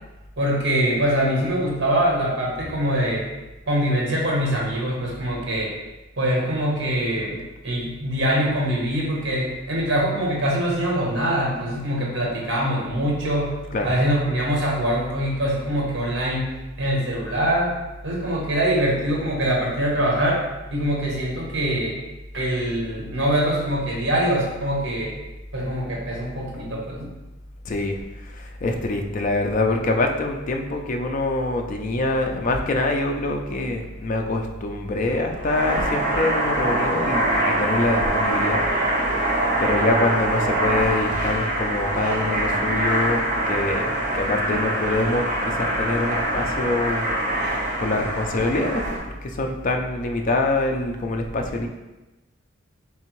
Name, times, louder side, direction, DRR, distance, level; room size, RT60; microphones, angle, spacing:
voice 1, 0.4-3.3 3.7-5.7 6.2-13.5 13.8-16.5 16.8-17.8 18.0-20.4 20.7-22.0 22.3-25.1 25.5-27.1, right 1 dB, 60° right, -3 dB, 1.1 m, -23 dB
voice 2, 27.6-47.5 47.8-49.0 49.2-51.7, left 2 dB, 40° left, 3 dB, 0.4 m, -25 dB
sound 1, 35.3-49.0, right 1 dB, 40° right, 0.8 m, -24 dB
3.6 x 3.3 x 3.1 m, 1.1 s
head